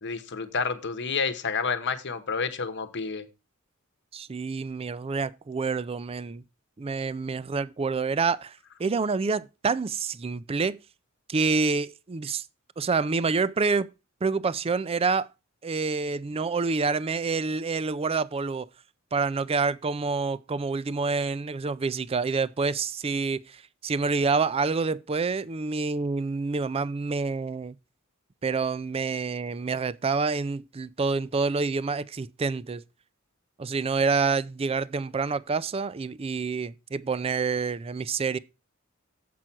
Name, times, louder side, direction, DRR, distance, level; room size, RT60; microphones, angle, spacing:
voice 1, 0.0-3.2, left 5 dB, 55° left, 1.0 m, -29 dB
voice 2, 4.1-6.4 6.8-10.8 11.3-12.5 12.8-13.9 14.2-15.3 15.6-18.7 19.1-27.8 28.4-32.8 33.6-38.4, right 4 dB, 30° right, 0.4 m, -27 dB
7.8 x 5.6 x 6.0 m
head